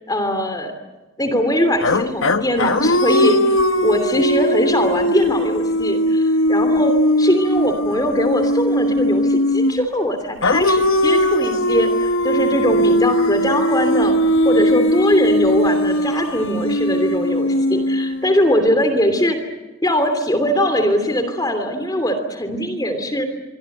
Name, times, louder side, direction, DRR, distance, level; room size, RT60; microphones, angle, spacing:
voice 1, 0.1-0.7 1.2-14.2 14.4-19.4 19.8-23.3, equal, 20° left, 7 dB, 3.0 m, -21 dB
sound 1, 1.8-9.9 10.4-18.5, left 1 dB, 80° left, 1.1 m, -19 dB
25.0 x 25.0 x 8.0 m, 1.1 s
head